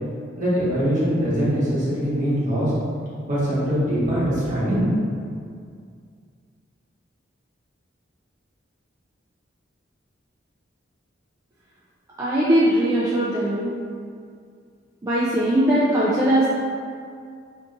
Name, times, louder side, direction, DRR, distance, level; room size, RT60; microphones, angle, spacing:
voice 1, 0.4-2.7 3.3-4.9, equal, 40° right, -9 dB, 1.0 m, -22 dB
voice 2, 12.2-13.7 15.0-16.5, right 1 dB, 20° right, -9 dB, 0.3 m, -20 dB
2.6 x 2.4 x 3.7 m, 2.2 s
head